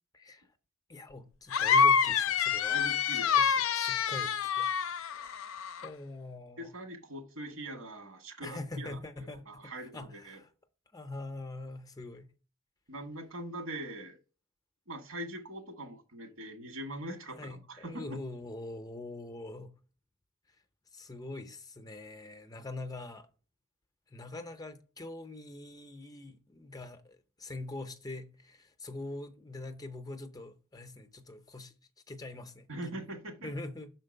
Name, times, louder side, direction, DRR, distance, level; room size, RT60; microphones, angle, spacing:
voice 1, 0.1-0.5 0.9-2.8 3.1-4.7 5.0-5.4 5.8-6.7 8.4-10.5 10.9-12.3 17.4-19.7 20.9-23.3 24.1-31.7 32.1-33.0 33.4-33.9, left 2 dB, 20° left, 0.6 m, -43 dB
sound 1, 1.5-5.9, left 7 dB, 75° left, 0.5 m, -27 dB
voice 2, 2.7-3.3 6.6-9.0 9.4-10.4 12.9-14.2 14.9-18.0 32.7-33.5, right 1 dB, 85° right, 1.9 m, -42 dB
6.1 x 4.5 x 6.5 m
head